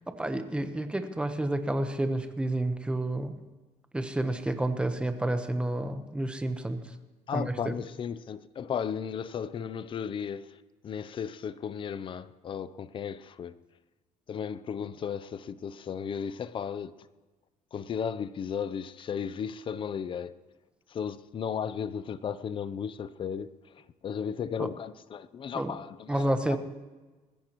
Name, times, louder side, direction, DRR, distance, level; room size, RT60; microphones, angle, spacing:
voice 1, 0.1-3.4 3.9-6.8 7.3-7.7 24.6-24.7 25.5-25.8 26.1-26.6, right 1 dB, 5° right, 1.0 m, -30 dB
voice 2, 7.3-10.5 10.8-13.6 14.3-16.9 17.7-20.4 20.9-23.5 24.0-26.6, left 7 dB, 40° left, 0.5 m, -35 dB
20.5 x 15.0 x 3.0 m
cardioid pair, 125°, 14 cm